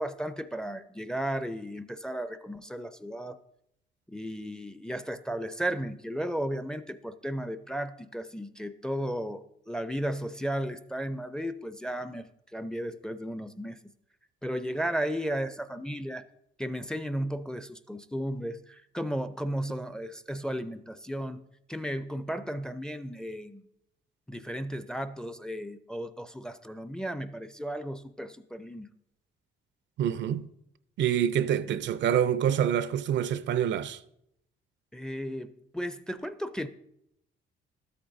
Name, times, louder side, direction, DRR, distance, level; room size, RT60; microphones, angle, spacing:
voice 1, 0.0-3.4 4.1-12.3 12.5-13.8 14.4-16.2 16.6-21.4 21.7-23.6 24.3-28.9 31.7-31.8 34.9-36.7, equal, 5° left, 0.4 m, -34 dB
voice 2, 30.0-30.5 31.0-34.0, right 9 dB, 65° right, 0.4 m, -26 dB
12.5 x 8.5 x 2.6 m
cardioid pair, 90°, 20 cm